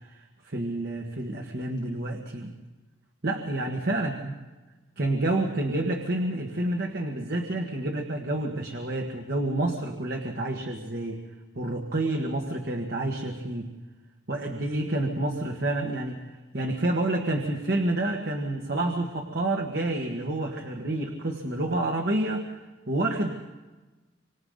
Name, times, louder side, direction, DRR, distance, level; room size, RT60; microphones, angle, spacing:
voice 1, 0.1-2.5 3.2-4.3 5.0-11.2 11.6-13.7 14.3-16.2 16.5-22.5 22.9-23.4, right 2 dB, 55° right, 2 dB, 1.7 m, -29 dB
26.5 x 25.5 x 4.0 m, 1.2 s
head